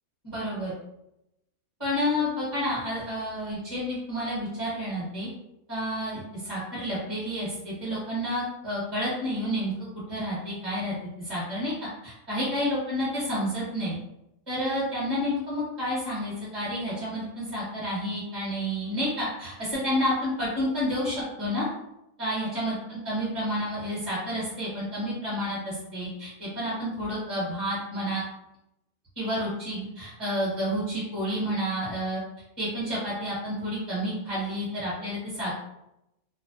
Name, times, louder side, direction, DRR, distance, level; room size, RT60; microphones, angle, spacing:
voice 1, 0.2-0.7 1.8-5.3 5.7-9.7 10.1-11.7 12.0-14.0 14.5-21.6 22.2-28.2 29.2-32.2 32.6-35.5, equal, 20° right, -10 dB, 0.9 m, -30 dB
2.6 x 2.0 x 2.5 m, 0.87 s
omnidirectional pair, 1.5 m